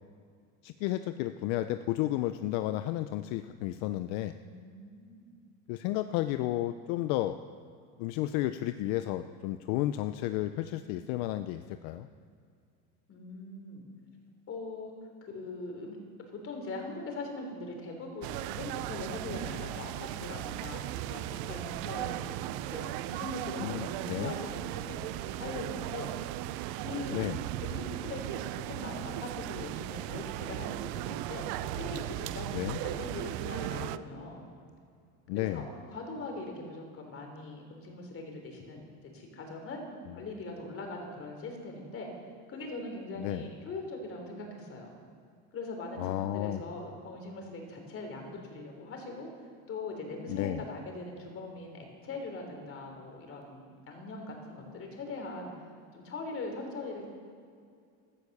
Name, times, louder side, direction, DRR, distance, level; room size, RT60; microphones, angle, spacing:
voice 1, 0.6-4.3 5.7-7.4 8.0-12.1 23.6-24.3 27.1-27.4 32.5-32.8 35.3-35.7 43.2-43.4 46.0-46.6 50.3-50.6, left 14 dB, 70° left, 10 dB, 0.7 m, -32 dB
voice 2, 4.4-5.3 13.1-13.8 14.5-14.9 15.2-16.0 16.3-26.1 26.8-27.3 27.6-34.5 35.3-42.1 42.5-44.9 45.5-49.3 49.7-55.5 55.9-57.1, left 2 dB, 35° left, 3 dB, 3.6 m, -41 dB
sound 1, 18.2-34.0, right 14 dB, 65° right, 0.6 m, -37 dB
16.0 x 13.0 x 6.7 m, 2.3 s
cardioid pair, 145°, 40 cm